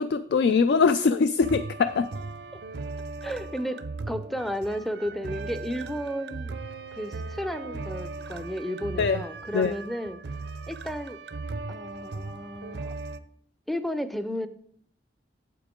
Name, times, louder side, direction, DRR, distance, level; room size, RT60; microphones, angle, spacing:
voice 1, 0.0-2.1 9.0-9.2 9.5-9.7, left 5 dB, 70° left, 11 dB, 0.3 m, -22 dB
sound 1, 1.4-13.2, right 3 dB, 70° right, 0.5 m, -37 dB
voice 2, 3.2-6.6 6.9-10.2 10.7-11.2 11.7-12.9 13.7-14.5, equal, ahead, 10 dB, 0.4 m, -33 dB
8.5 x 8.0 x 3.7 m, 0.64 s
head